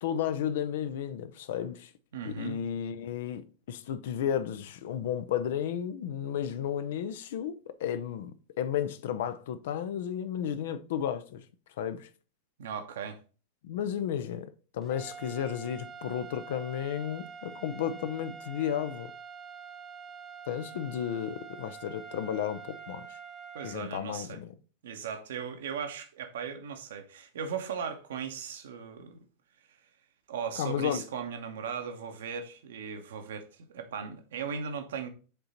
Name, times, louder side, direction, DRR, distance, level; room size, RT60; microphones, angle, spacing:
voice 1, 0.0-1.9 2.3-11.4 11.8-12.1 13.6-19.1 20.5-23.2 23.6-24.5 30.6-31.0, left 9 dB, 55° left, 0.5 m, -33 dB
voice 2, 2.1-2.6 12.6-13.2 23.5-24.4 24.8-29.2 30.3-35.1, right 7 dB, 60° right, 0.9 m, -37 dB
sound 1, 14.8-23.8, right 6 dB, 15° right, 0.8 m, -46 dB
6.8 x 3.8 x 4.3 m
figure-of-eight pair, 90°, 0 cm